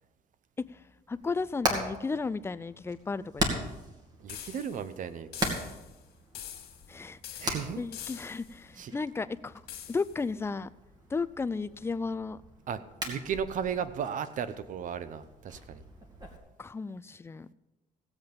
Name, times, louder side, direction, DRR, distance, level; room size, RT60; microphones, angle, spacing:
voice 1, 0.6-3.6 6.9-7.5 7.8-9.6 9.9-10.7 11.1-12.4 16.6-17.5, left 4 dB, 15° left, 14 dB, 0.4 m, -34 dB
Hammer, 1.1-16.4, right 1 dB, 25° right, 2.4 m, -39 dB
voice 2, 4.2-5.6 7.4-7.8 8.8-8.9 12.7-15.8, right 7 dB, 55° right, 13 dB, 0.8 m, -35 dB
sound 1, 4.3-4.9 5.3-6.0 6.3-6.9 7.2-8.6 9.7-10.2, left 10 dB, 75° left, 2.2 m, -44 dB
16.5 x 8.0 x 5.3 m, 1.0 s
cardioid pair, 130°, 16 cm